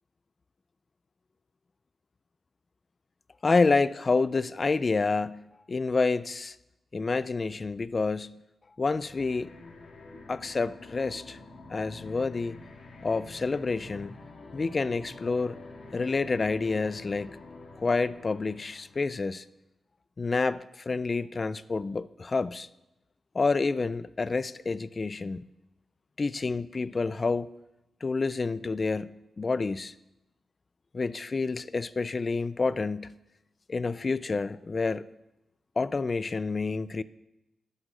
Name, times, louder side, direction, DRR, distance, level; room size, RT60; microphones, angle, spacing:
voice 1, 3.4-6.6 6.9-8.4 8.8-9.9 10.3-11.4 11.7-12.6 13.0-14.2 14.5-15.6 15.9-17.3 17.8-19.4 20.2-22.7 23.3-25.5 26.2-27.5 28.0-29.9 30.9-33.1 33.7-35.1 35.8-37.0, left 4 dB, 30° left, 0.3 m, -28 dB
sound 1, 8.9-19.4, left 3 dB, 55° left, 1.6 m, -48 dB
11.0 x 6.2 x 6.5 m
wide cardioid pair, 140°, 0 cm